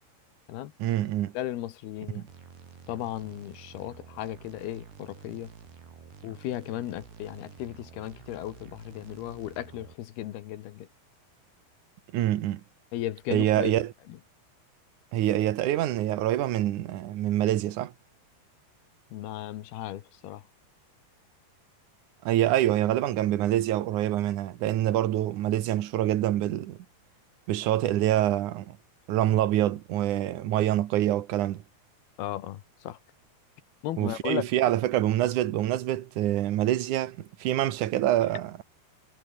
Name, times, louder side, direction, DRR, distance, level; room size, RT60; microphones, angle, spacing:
voice 1, 0.8-1.3 2.1-2.2 12.1-12.6 13.3-13.9 15.1-17.9 22.2-26.8 27.5-28.8 29.1-31.6 34.0-38.5, right 13 dB, 65° right, 2.2 m, -26 dB
voice 2, 1.3-2.3 2.9-5.5 6.2-10.9 12.9-14.2 19.1-20.4 32.2-33.0 33.8-34.5, left 13 dB, 75° left, 3.2 m, -36 dB
sound 1, 2.3-10.0, right 6 dB, 85° right, 6.4 m, -50 dB
omnidirectional pair, 4.7 m